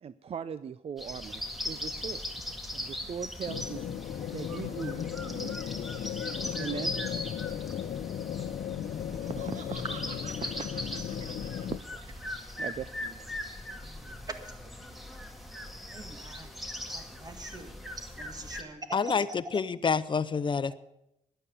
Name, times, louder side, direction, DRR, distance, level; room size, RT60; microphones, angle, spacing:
voice 1, 0.0-2.2 2.7-4.0 4.3-5.8 6.5-6.9 9.5-9.6 10.4-10.7 11.2-11.3 11.7-12.0 12.6-13.3, right 7 dB, 50° right, 15 dB, 0.5 m, -40 dB
sound 1, 1.0-18.6, left 1 dB, ahead, 1.8 m, -40 dB
sound 2, 3.5-11.8, left 9 dB, 75° left, 0.6 m, -36 dB
Laughter, 9.0-12.2, right 5 dB, 70° right, 1.7 m, -48 dB
voice 2, 13.8-14.5 15.9-16.5 16.9-17.8 18.2-18.8 19.0-19.4, right 2 dB, 30° right, 7 dB, 2.0 m, -43 dB
voice 3, 18.9-20.7, left 5 dB, 40° left, 15 dB, 0.7 m, -28 dB
12.5 x 10.5 x 8.5 m, 0.83 s
cardioid pair, 105°, 13 cm